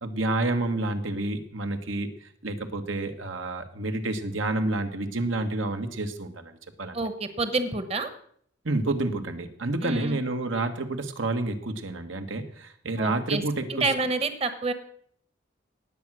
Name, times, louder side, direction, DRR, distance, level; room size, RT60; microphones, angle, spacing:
voice 1, 0.0-6.5 6.8-7.0 8.6-13.9, right 2 dB, 85° right, 6 dB, 1.5 m, -29 dB
voice 2, 6.9-8.1 9.8-10.2 13.0-13.4 13.7-14.7, right 3 dB, 30° right, 10 dB, 1.0 m, -28 dB
18.5 x 7.8 x 6.2 m, 0.63 s
head